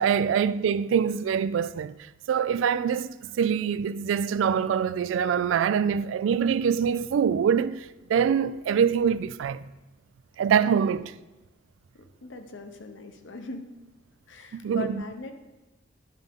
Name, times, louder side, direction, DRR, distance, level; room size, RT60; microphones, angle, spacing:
voice 1, 0.0-2.0 2.3-9.6 10.4-11.1 14.5-15.0, right 7 dB, 90° right, 0.3 m, -24 dB
voice 2, 10.6-11.1 11.9-13.7 14.3-15.3, left 3 dB, 80° left, 0.8 m, -41 dB
11.0 x 5.3 x 3.5 m
head